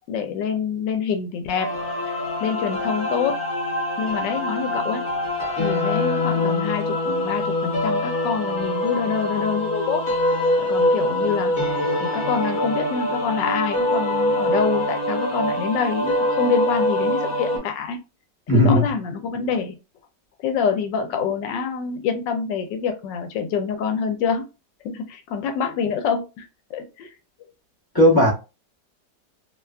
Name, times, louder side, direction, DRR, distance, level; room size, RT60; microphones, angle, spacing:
voice 1, 0.1-1.7 2.1-3.4 4.0-5.1 5.6-10.0 10.6-11.5 12.0-18.0 18.5-19.8 20.4-24.5 24.8-27.1, left 6 dB, 85° left, 1.3 m, -26 dB
sound 1, 1.6-17.6, left 1 dB, 45° left, 1.1 m, -24 dB
voice 2, 18.5-18.9 27.9-28.3, equal, 25° left, 0.5 m, -15 dB
3.0 x 2.2 x 2.3 m
omnidirectional pair, 1.9 m